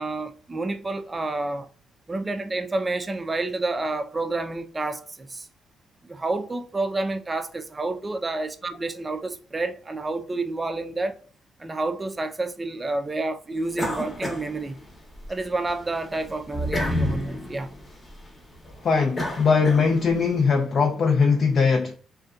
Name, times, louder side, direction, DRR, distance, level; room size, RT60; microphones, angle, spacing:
voice 1, 0.0-1.7 2.1-5.5 6.0-11.1 11.6-14.8 15.3-17.7, right 2 dB, 25° right, 0.4 m, -29 dB
sound 1, 13.7-15.3 15.7-20.3, left 1 dB, 25° left, 0.8 m, -31 dB
voice 2, 18.8-21.9, left 5 dB, 50° left, 0.4 m, -20 dB
2.5 x 2.2 x 2.3 m
cardioid pair, 90°, 0 cm